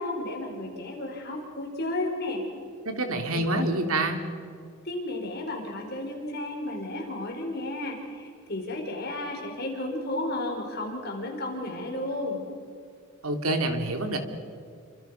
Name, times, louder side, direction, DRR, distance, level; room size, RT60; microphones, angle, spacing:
voice 1, 0.0-2.4 3.3-3.4 4.8-12.4, left 1 dB, 45° left, 1 dB, 5.1 m, -33 dB
voice 2, 2.8-4.2 13.2-14.2, right 2 dB, 75° right, 5 dB, 3.0 m, -27 dB
29.0 x 26.0 x 5.9 m, 2.3 s
head